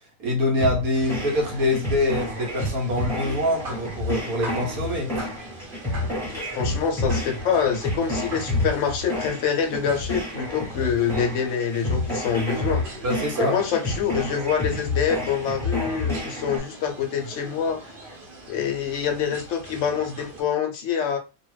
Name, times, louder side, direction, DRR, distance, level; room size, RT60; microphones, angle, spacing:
voice 1, 0.2-5.1 13.0-13.6, left 1 dB, 75° right, 1.2 m, -24 dB
sound 1, 0.6-16.6, left 2 dB, ahead, 0.9 m, -29 dB
sound 2, 0.9-20.4, right 1 dB, 40° right, 1.0 m, -42 dB
voice 2, 6.3-12.8 13.4-17.9 18.5-21.2, left 7 dB, 65° left, 0.8 m, -26 dB
2.7 x 2.3 x 3.1 m
omnidirectional pair, 1.6 m